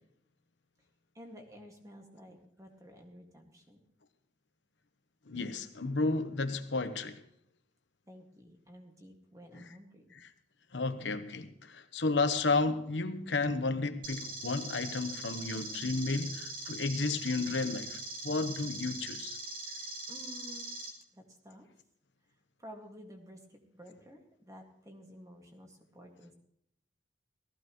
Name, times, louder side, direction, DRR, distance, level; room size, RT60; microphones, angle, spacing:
voice 1, 1.1-3.8 8.1-10.0 20.1-20.8 21.1-21.7 22.6-26.3, equal, 20° right, 2.0 m, -52 dB
voice 2, 5.3-7.2 9.5-9.6 10.7-19.4, left 3 dB, 85° left, 1.0 m, -32 dB
sound 1, 14.0-20.9, right 1 dB, 50° right, 2.7 m, -42 dB
18.0 x 14.5 x 3.1 m
head